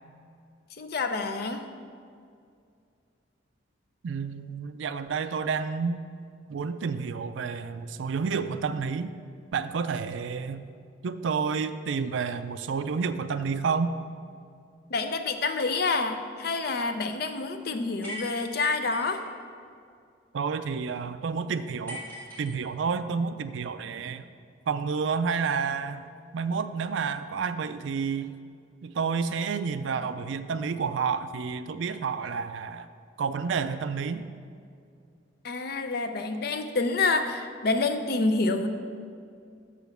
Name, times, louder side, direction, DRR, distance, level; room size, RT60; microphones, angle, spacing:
voice 1, 0.8-1.7 14.9-19.2 35.4-38.7, left 3 dB, 50° left, 7 dB, 0.5 m, -28 dB
voice 2, 4.0-6.0 6.5-9.1 9.5-10.6 11.0-13.9 20.3-22.0 22.4-24.2 24.7-26.1 26.3-28.4 28.8-32.9 33.2-34.2, right 5 dB, 70° right, 11 dB, 0.4 m, -30 dB
sound 1, 18.0-19.3 21.9-23.0, left 1 dB, 10° left, 2.1 m, -40 dB
6.6 x 5.0 x 6.5 m, 2.3 s
head